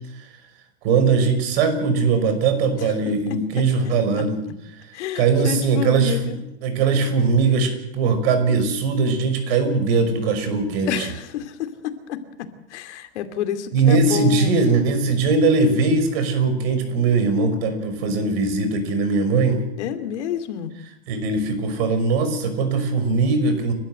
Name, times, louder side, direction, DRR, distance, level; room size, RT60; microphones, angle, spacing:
voice 1, 0.8-4.4 5.2-11.1 13.7-19.6 21.1-23.7, right 4 dB, 60° right, 8 dB, 5.8 m, -20 dB
voice 2, 4.9-6.4 10.9-12.2 12.7-14.6 19.8-20.7, left 9 dB, 75° left, 9 dB, 2.7 m, -29 dB
30.0 x 13.0 x 7.8 m, 0.82 s
supercardioid pair, 145°, 35 cm